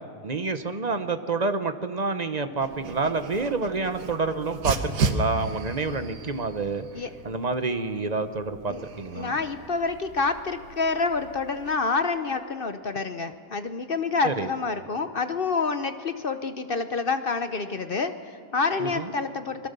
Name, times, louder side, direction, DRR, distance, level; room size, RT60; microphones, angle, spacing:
voice 1, 0.2-6.9 7.2-9.3 14.2-14.5 18.8-19.1, right 3 dB, 30° right, 9 dB, 0.9 m, -28 dB
Dog, 2.6-11.7, right 4 dB, 85° right, 1.8 m, -35 dB
voice 2, 9.1-19.7, left 4 dB, 45° left, 9 dB, 0.8 m, -28 dB
28.0 x 21.5 x 6.9 m, 2.3 s
omnidirectional pair, 1.7 m